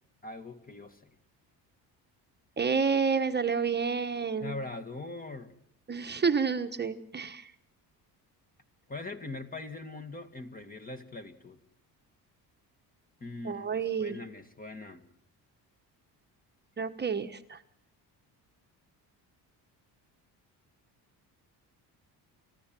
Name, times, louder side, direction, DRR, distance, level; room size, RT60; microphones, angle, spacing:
voice 1, 0.2-1.1 4.4-5.5 8.9-11.6 13.2-15.0, left 2 dB, 20° left, 8 dB, 2.0 m, -41 dB
voice 2, 2.6-4.5 5.9-7.5 13.4-14.2 16.8-17.6, right 5 dB, 25° right, 7 dB, 1.2 m, -29 dB
29.5 x 14.5 x 7.6 m, 0.72 s
cardioid pair, 125°, 39 cm